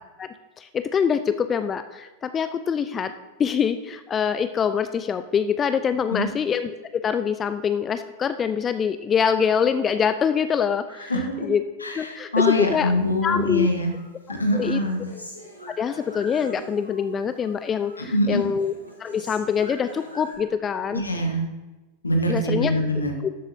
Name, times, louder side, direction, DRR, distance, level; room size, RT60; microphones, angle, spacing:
voice 1, 0.6-3.1 3.4-11.1 11.4-11.6 11.9-12.3 12.6-12.9 13.2-13.7 14.5-14.8 15.8-18.7 19.0-21.0 22.3-22.7 23.2-23.3, left 7 dB, 25° left, 11 dB, 0.4 m, -24 dB
voice 2, 11.0-11.5 11.8-13.9 14.3-15.1 18.1-18.4 20.9-21.4 22.0-23.1, left 1 dB, 80° left, 3 dB, 1.3 m, -24 dB
Human voice, 12.4-13.5 13.9-17.1 17.4-18.1 18.4-20.3, equal, 90° right, 2.0 m, -44 dB
12.5 x 7.8 x 2.8 m, 1.1 s
figure-of-eight pair, 90°, 0 cm